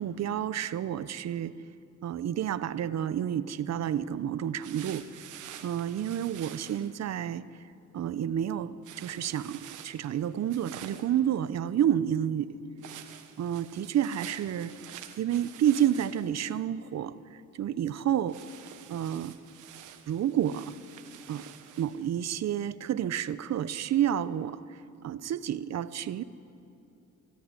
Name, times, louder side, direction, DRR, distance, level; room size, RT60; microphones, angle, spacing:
voice 1, 0.0-1.5 2.0-5.1 5.6-7.4 7.9-12.6 13.4-14.7 15.2-17.1 17.5-18.4 18.9-19.3 20.1-20.7 21.3-21.5 21.8-24.6 25.0-26.2, right 10 dB, 60° right, 15 dB, 0.8 m, -29 dB
sound 1, 4.6-6.9 8.8-11.2 12.8-16.4 18.3-22.1, right 10 dB, 85° right, 1.5 m, -48 dB
25.0 x 13.5 x 9.8 m, 2.7 s
cardioid pair, 90°, 30 cm